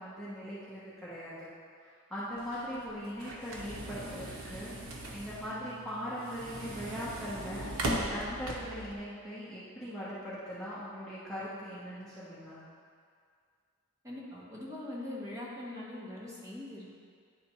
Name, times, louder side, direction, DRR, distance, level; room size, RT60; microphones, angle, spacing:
voice 1, 0.0-1.5 2.1-4.7 5.1-7.7 8.1-12.6, equal, ahead, -11 dB, 1.1 m, -40 dB
sound 1, 2.4-8.9, right 1 dB, 65° right, 0.9 m, -39 dB
voice 2, 14.0-16.9, left 1 dB, 15° right, -7 dB, 1.3 m, -42 dB
10.0 x 3.4 x 4.4 m, 2.1 s
head